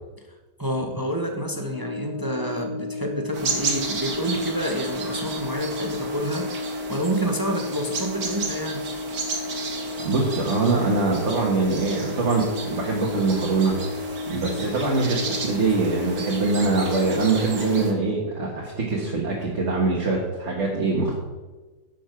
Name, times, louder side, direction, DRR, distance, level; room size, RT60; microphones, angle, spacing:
voice 1, 0.6-8.8 14.5-14.7, right 1 dB, 25° right, 3 dB, 0.5 m, -28 dB
Brass instrument, 1.7-18.1, left 3 dB, 65° left, 1.5 m, -33 dB
sound 1, 3.3-17.9, right 4 dB, 60° right, 2.0 m, -33 dB
voice 2, 10.0-13.8 14.3-21.2, right 3 dB, 40° right, -2 dB, 1.7 m, -23 dB
10.0 x 6.3 x 6.0 m, 1.2 s
omnidirectional pair, 2.0 m